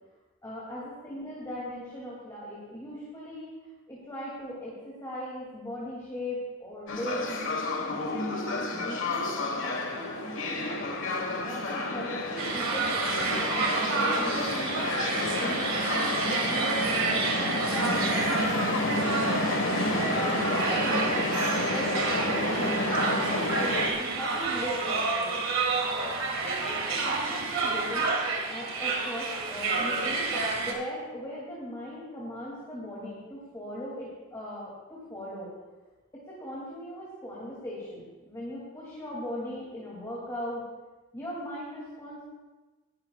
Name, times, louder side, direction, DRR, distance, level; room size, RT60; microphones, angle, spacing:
voice 1, 0.4-3.5 3.9-7.3 7.8-11.1 11.4-15.7 16.1-19.1 19.7-21.2 21.5-25.4 26.4-28.1 28.5-35.5 36.1-40.6 41.1-42.2, equal, 15° left, -7 dB, 2.5 m, -39 dB
sound 1, 6.9-23.9, left 2 dB, 60° left, 1.4 m, -30 dB
sound 2, 12.4-30.7, right 4 dB, 65° right, 1.9 m, -29 dB
19.5 x 12.0 x 2.4 m, 1.2 s
head